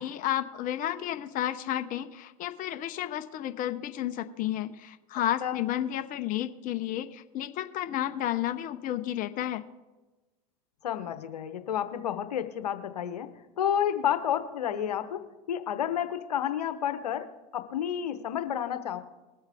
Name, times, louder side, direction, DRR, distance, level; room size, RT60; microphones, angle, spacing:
voice 1, 0.0-9.6, left 12 dB, 45° left, 9 dB, 0.9 m, -32 dB
voice 2, 10.8-13.3 13.6-15.2 15.5-17.3 17.5-19.0, left 9 dB, 90° left, 10 dB, 1.0 m, -30 dB
20.5 x 8.0 x 3.5 m, 1.1 s
hypercardioid pair, 95°, 20 cm